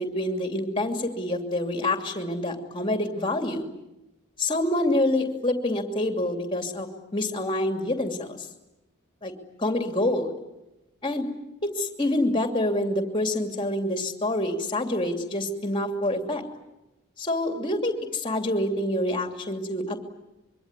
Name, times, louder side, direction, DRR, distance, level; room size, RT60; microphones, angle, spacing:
voice 1, 0.0-3.7 4.4-6.9 7.1-8.4 9.2-9.3 9.6-10.3 11.0-11.3 11.8-16.4 17.2-20.0, left 1 dB, 25° left, 6 dB, 2.8 m, -27 dB
25.5 x 23.5 x 9.8 m, 0.96 s
head